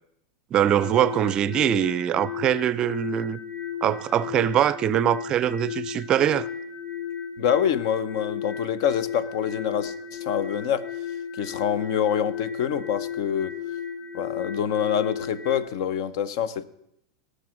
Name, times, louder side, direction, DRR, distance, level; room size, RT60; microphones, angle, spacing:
voice 1, 0.5-3.4 3.8-6.5, right 11 dB, 30° right, 0.4 m, -23 dB
sound 1, 0.6-15.6, left 8 dB, 15° left, 0.9 m, -34 dB
voice 2, 7.4-10.9 11.4-13.5 14.1-16.6, left 8 dB, 65° left, 0.8 m, -26 dB
18.0 x 6.6 x 6.3 m
supercardioid pair, 135°, 3 cm